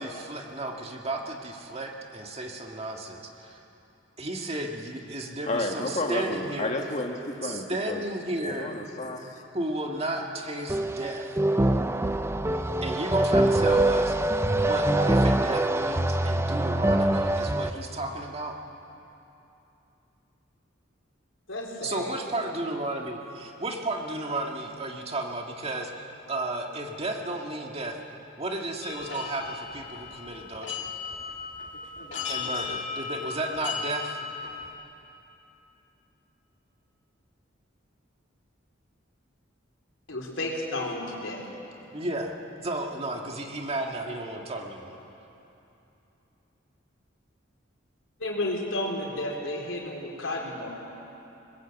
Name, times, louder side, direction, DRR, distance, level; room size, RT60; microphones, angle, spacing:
voice 1, 0.0-3.6 4.2-6.7 7.4-8.7 9.5-11.3 12.8-14.2 14.6-18.6 21.8-25.9 26.3-28.0 28.4-30.9 32.3-34.2 41.9-45.0, right 2 dB, 30° right, 1 dB, 2.0 m, -33 dB
voice 2, 5.5-8.0 8.4-9.4, left 2 dB, 40° left, 2 dB, 2.1 m, -31 dB
sound 1, 10.7-17.7, right 1 dB, 15° right, 0.5 m, -24 dB
voice 3, 21.5-22.1 40.1-41.4 48.2-50.7, left 1 dB, 85° left, -2 dB, 4.0 m, -32 dB
sound 2, 28.8-34.7, left 6 dB, 65° left, 2.9 m, -36 dB
23.0 x 20.5 x 8.2 m, 2.9 s
head